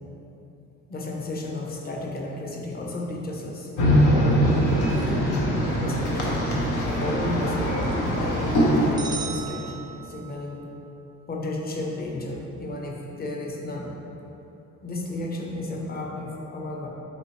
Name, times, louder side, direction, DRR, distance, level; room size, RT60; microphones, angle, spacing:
voice 1, 0.9-4.7 5.8-6.4 6.8-10.6 11.3-13.9 14.8-16.9, left 1 dB, 30° left, -1 dB, 0.7 m, -33 dB
sound 1, 3.8-8.9, equal, 90° left, 0.8 m, -22 dB
sound 2, 9.0-10.5, right 6 dB, 15° right, 0.3 m, -37 dB
4.1 x 3.6 x 3.0 m, 3.0 s
cardioid pair, 90°, 30 cm